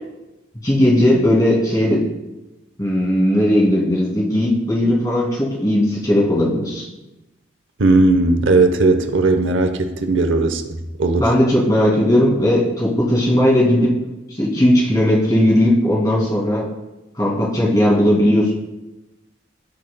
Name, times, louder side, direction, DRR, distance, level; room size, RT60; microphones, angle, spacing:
voice 1, 0.6-2.0 2.8-6.9 11.2-13.9 14.3-16.7 17.2-18.5, left 1 dB, 20° left, -6 dB, 2.2 m, -17 dB
voice 2, 7.8-11.3, right 2 dB, 85° right, 8 dB, 0.8 m, -17 dB
16.5 x 6.5 x 2.2 m, 1.0 s
head